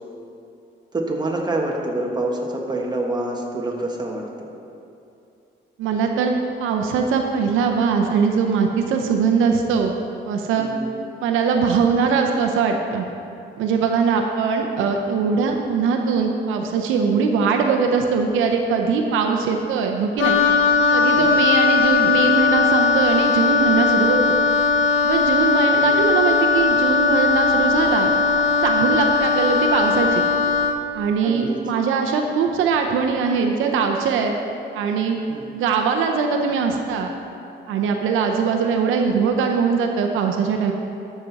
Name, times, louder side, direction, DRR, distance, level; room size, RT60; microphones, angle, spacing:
voice 1, 0.9-4.5 10.6-10.9 21.1-21.5 25.7-26.0 31.2-31.6 35.3-35.4, right 2 dB, 20° right, 0 dB, 1.5 m, -27 dB
voice 2, 5.8-9.9 10.2-10.7 11.2-13.1 13.6-20.4 20.9-24.4 25.0-28.1 28.6-30.2 30.9-34.4 34.7-35.2 35.5-37.1 37.7-40.7, right 5 dB, 90° right, 3 dB, 0.7 m, -21 dB
Wind instrument woodwind instrument, 20.2-30.8, left 4 dB, 75° left, 0.6 m, -18 dB
13.0 x 6.1 x 4.1 m, 2.6 s
cardioid pair, 90°, 20 cm